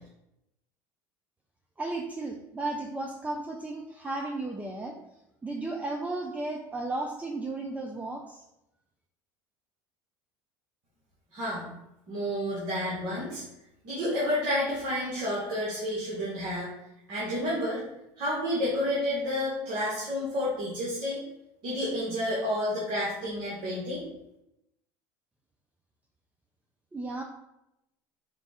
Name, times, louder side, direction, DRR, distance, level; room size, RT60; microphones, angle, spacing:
voice 1, 1.8-5.0 5.4-8.4 26.9-27.2, right 2 dB, 15° right, 2 dB, 0.5 m, -34 dB
voice 2, 11.3-11.7 12.1-13.4 13.8-16.7 17.1-17.8 18.2-21.2 21.6-24.0, left 1 dB, 55° right, -6 dB, 1.5 m, -30 dB
4.6 x 2.3 x 4.1 m, 0.86 s
supercardioid pair, 90°, 10 cm